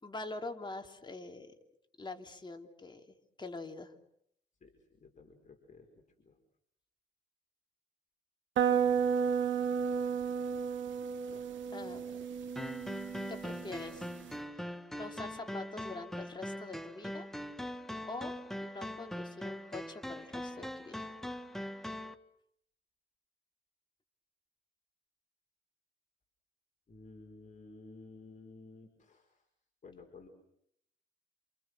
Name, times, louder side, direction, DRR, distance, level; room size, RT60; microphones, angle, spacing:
voice 1, 0.0-1.5 2.0-3.9 11.7-12.2 13.3-14.1 14.5-17.3 18.1-18.3 18.6-21.1, left 3 dB, 20° left, 4 dB, 3.4 m, -45 dB
voice 2, 4.6-6.3 9.9-10.0 11.3-11.4 26.9-29.4 29.8-30.3, left 3 dB, 40° left, 3 dB, 5.1 m, -54 dB
sound 1, 8.6-14.3, right 7 dB, 70° right, 2.7 m, -33 dB
sound 2, 12.6-22.1, equal, ahead, 1.6 m, -41 dB
29.0 x 28.0 x 6.5 m, 0.72 s
cardioid pair, 90°, 20 cm